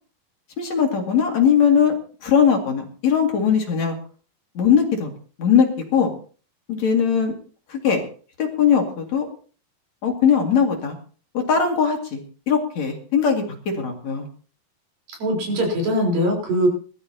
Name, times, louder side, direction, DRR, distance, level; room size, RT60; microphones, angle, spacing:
voice 1, 0.6-1.9 2.2-4.0 4.5-5.1 5.4-5.7 5.9-6.1 6.7-7.3 7.7-8.0 8.4-9.3 10.0-11.0 11.3-12.2 12.5-13.4 13.8-14.3, left 7 dB, 55° left, 2 dB, 3.3 m, -19 dB
voice 2, 15.1-16.7, equal, 80° right, 0 dB, 6.0 m, -21 dB
21.0 x 13.0 x 2.9 m, 0.39 s
omnidirectional pair, 4.0 m